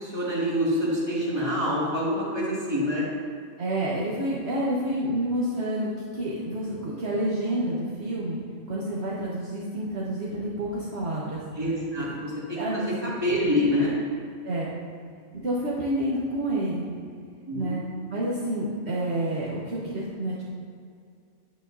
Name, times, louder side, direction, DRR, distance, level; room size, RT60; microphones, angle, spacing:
voice 1, 0.0-3.0 11.6-13.9 17.5-17.7, left 1 dB, 20° right, -8 dB, 2.4 m, -26 dB
voice 2, 3.6-8.4 8.7-11.4 12.6-13.0 14.4-14.7 15.4-16.9 17.5-17.8 18.1-20.4, right 1 dB, 55° right, -7 dB, 1.4 m, -29 dB
9.8 x 8.7 x 2.7 m, 2.2 s
omnidirectional pair, 1.4 m